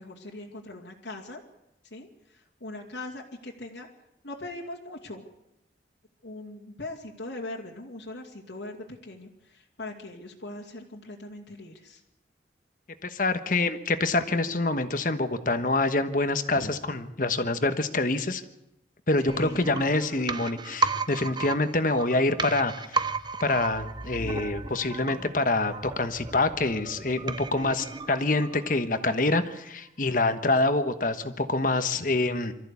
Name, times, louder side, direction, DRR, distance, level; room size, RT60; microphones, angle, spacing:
voice 1, 0.0-1.4 1.9-3.9 4.2-5.3 6.2-12.0 16.6-16.7 19.2-19.8 31.9-32.0, left 2 dB, 85° left, -1 dB, 2.6 m, -40 dB
voice 2, 13.0-18.4 19.1-22.7 23.4-32.5, left 2 dB, 50° left, 9 dB, 1.3 m, -26 dB
sound 1, 19.3-29.0 29.3-29.4, right 4 dB, 25° right, 0.7 m, -34 dB
24.0 x 14.0 x 8.4 m, 0.90 s
head